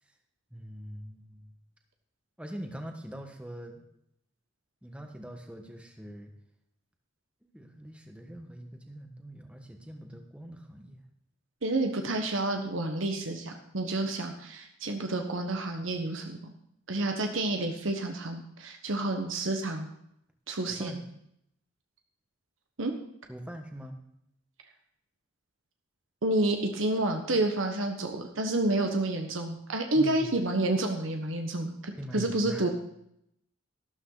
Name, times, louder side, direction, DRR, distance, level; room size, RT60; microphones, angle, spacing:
voice 1, 0.5-1.5 2.4-3.8 4.8-6.3 7.4-11.0 20.7-21.0 23.3-24.0 30.0-30.3 32.0-32.7, right 1 dB, 5° right, 3 dB, 1.3 m, -43 dB
voice 2, 11.6-16.4 16.9-19.9 20.5-21.0 22.8-22.9 26.2-32.7, right 2 dB, 80° right, 4 dB, 1.3 m, -29 dB
12.5 x 12.5 x 4.0 m, 0.75 s
head